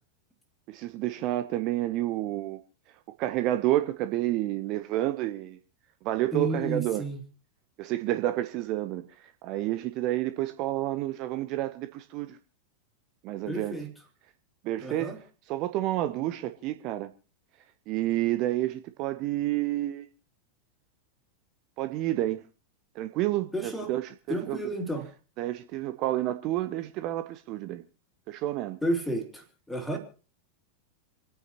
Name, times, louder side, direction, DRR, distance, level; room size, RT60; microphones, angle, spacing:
voice 1, 0.7-2.6 3.2-5.6 6.0-7.0 7.8-12.4 13.2-13.8 14.6-15.1 15.5-17.1 17.9-20.1 21.8-22.4 22.9-24.6 25.4-27.8 28.3-28.8, right 15 dB, 40° right, 0.7 m, -29 dB
voice 2, 6.3-7.2 13.5-13.9 14.8-15.2 23.5-23.9 24.3-25.1 28.8-30.0, right 1 dB, 5° left, 2.9 m, -31 dB
28.0 x 9.3 x 2.8 m
figure-of-eight pair, 90°, 0 cm